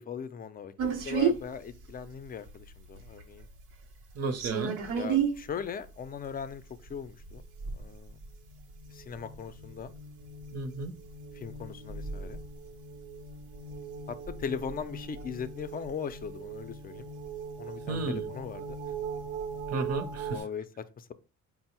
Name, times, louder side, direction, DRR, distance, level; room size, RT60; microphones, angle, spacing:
voice 1, 0.0-3.5 4.9-6.6 6.9-7.4 7.7-8.2 8.9-9.9 11.3-12.4 14.1-17.1 17.6-18.8 20.3-21.1, left 7 dB, 30° left, 0.4 m, -39 dB
sound 1, 0.8-20.4, right 6 dB, 90° right, 0.8 m, -36 dB
voice 2, 4.1-4.8 10.5-11.0 17.9-18.3 19.7-20.4, right 3 dB, 55° right, 0.7 m, -33 dB
4.4 x 2.0 x 4.2 m
cardioid pair, 90°, 30 cm